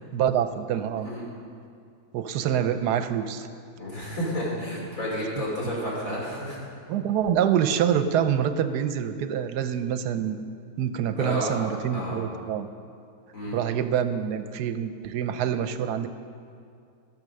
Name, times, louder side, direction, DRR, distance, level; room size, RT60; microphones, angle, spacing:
voice 1, 0.1-1.1 2.1-3.5 5.4-5.5 6.9-10.4 10.8-12.7 13.5-16.1, right 9 dB, 80° right, 10 dB, 1.2 m, -26 dB
voice 2, 3.8-6.6 11.2-11.6 11.9-12.2 13.3-13.6, equal, 55° left, -5 dB, 3.7 m, -31 dB
16.0 x 6.7 x 6.4 m, 2.4 s
omnidirectional pair, 1.7 m